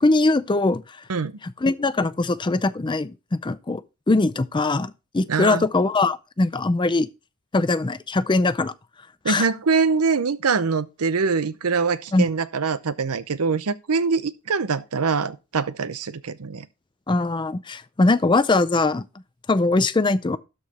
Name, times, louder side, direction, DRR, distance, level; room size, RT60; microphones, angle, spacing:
voice 1, 0.0-1.0 1.6-7.1 7.5-8.7 9.3-9.5 12.1-12.3 17.1-19.0 19.5-20.4, left 2 dB, 20° left, 0.4 m, -21 dB
voice 2, 5.3-5.7 9.2-16.7, right 5 dB, 85° right, 0.7 m, -24 dB
12.5 x 4.8 x 4.2 m
head